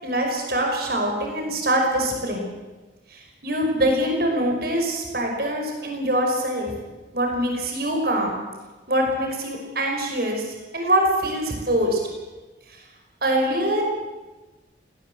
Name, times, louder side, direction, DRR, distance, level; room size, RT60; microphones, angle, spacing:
voice 1, 0.0-2.5 3.1-6.7 7.1-8.4 8.9-12.0 12.7-12.8 13.2-13.8, right 1 dB, 55° right, 2 dB, 5.4 m, -24 dB
19.0 x 18.5 x 8.0 m, 1.2 s
head